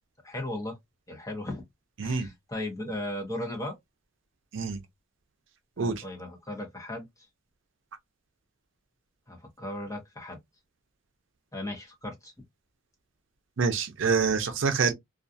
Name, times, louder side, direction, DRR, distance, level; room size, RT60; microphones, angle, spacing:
voice 1, 0.2-0.8 1.1-1.6 2.0-3.8 5.8-7.1 9.3-10.4 11.5-12.3, left 1 dB, 15° left, 0.8 m, -36 dB
voice 2, 13.6-14.9, right 5 dB, 65° right, 0.6 m, -26 dB
2.4 x 2.3 x 2.6 m
head